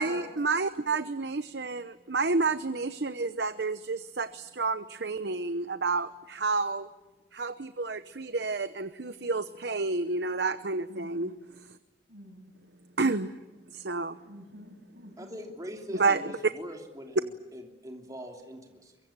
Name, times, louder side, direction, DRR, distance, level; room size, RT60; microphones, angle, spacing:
voice 1, 0.0-6.9 7.3-11.3 13.0-13.4 13.7-14.2 16.0-16.2, right 3 dB, 60° right, 12 dB, 0.9 m, -30 dB
voice 2, 10.9-11.4 12.1-12.5 14.2-15.4 15.9-16.0, right 1 dB, 80° right, 5 dB, 7.7 m, -47 dB
voice 3, 15.2-19.0, equal, 20° right, 2 dB, 3.1 m, -42 dB
24.0 x 23.5 x 8.9 m, 1.1 s
head